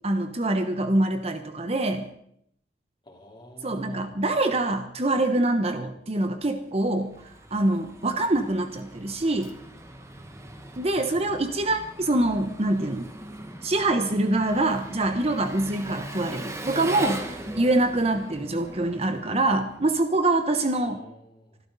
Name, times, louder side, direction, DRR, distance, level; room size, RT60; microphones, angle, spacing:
voice 1, 0.0-2.1 3.6-7.1 7.5-9.5 10.8-13.1 13.6-17.3 17.6-21.0, right 2 dB, 35° right, 8 dB, 1.0 m, -25 dB
voice 2, 3.0-4.0 10.9-11.3 20.6-21.6, equal, 25° left, 0 dB, 3.3 m, -48 dB
Engine, 6.6-20.2, right 1 dB, 15° right, 1.4 m, -40 dB
26.0 x 12.5 x 4.0 m, 0.69 s
head